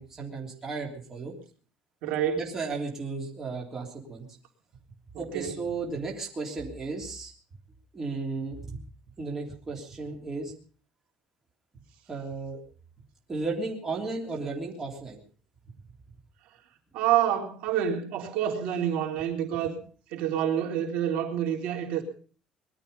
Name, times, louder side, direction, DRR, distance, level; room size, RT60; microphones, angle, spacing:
voice 1, 0.0-1.3 2.4-4.3 5.2-7.3 7.9-8.8 9.2-10.5 12.1-12.6 13.3-15.2, right 3 dB, 20° right, -1 dB, 3.4 m, -34 dB
voice 2, 2.0-2.4 5.1-5.5 16.9-19.7 20.1-22.0, right 10 dB, 70° right, 2 dB, 3.6 m, -27 dB
21.0 x 12.5 x 5.4 m, 0.42 s
cardioid pair, 165°, 2 cm